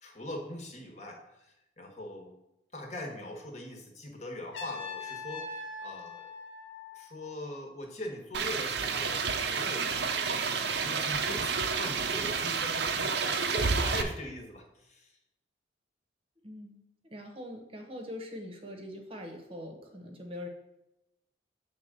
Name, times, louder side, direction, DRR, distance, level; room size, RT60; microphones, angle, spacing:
voice 1, 0.0-2.4 2.7-6.3 6.9-15.2, left 1 dB, 35° left, 2 dB, 1.3 m, -42 dB
Trumpet, 4.5-7.5, left 3 dB, 75° left, 1.3 m, -42 dB
sound 1, 8.3-14.0, right 5 dB, 60° right, 0.6 m, -30 dB
voice 2, 16.4-20.5, left 1 dB, 30° right, 3 dB, 0.9 m, -43 dB
7.6 x 3.7 x 6.6 m, 0.89 s
head